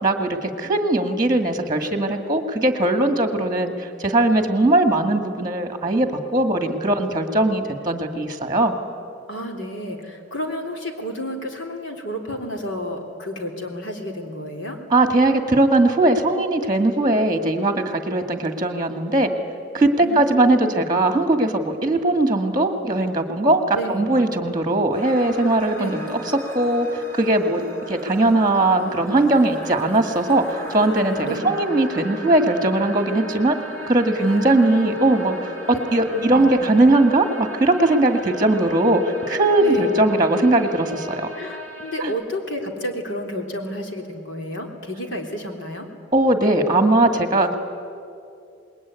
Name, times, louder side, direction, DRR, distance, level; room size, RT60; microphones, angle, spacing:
voice 1, 0.0-8.8 14.9-19.3 19.7-26.2 26.5-33.6 33.9-41.3 42.0-42.1 46.1-47.5, right 2 dB, 20° right, 6 dB, 1.9 m, -19 dB
voice 2, 9.3-14.8 20.0-20.9 23.7-24.2 25.7-26.1 31.2-31.6 34.2-35.0 36.1-36.8 39.6-40.2 41.3-45.9, equal, 75° left, 3 dB, 3.5 m, -31 dB
sound 1, 24.9-42.0, equal, 15° left, 5.1 m, -37 dB
27.0 x 20.5 x 9.5 m, 2.5 s
head